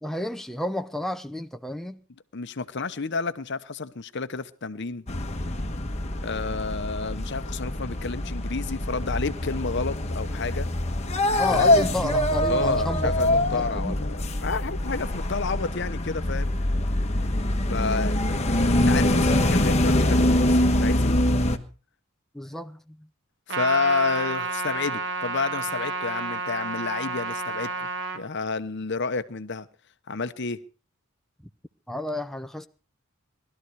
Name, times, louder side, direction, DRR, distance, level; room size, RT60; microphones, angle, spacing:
voice 1, 0.0-2.0 11.4-14.0 22.3-23.1 31.9-32.7, left 1 dB, ahead, 0.7 m, -31 dB
voice 2, 2.3-5.0 6.2-10.7 11.5-11.7 12.5-16.5 17.7-18.2 18.7-21.2 23.5-27.9 28.1-29.7 30.1-30.6, left 4 dB, 55° left, 0.9 m, -30 dB
sound 1, 5.1-21.6, left 1 dB, 30° left, 1.3 m, -24 dB
Trumpet, 23.5-28.2, right 3 dB, 60° right, 1.9 m, -30 dB
19.5 x 13.0 x 4.7 m
head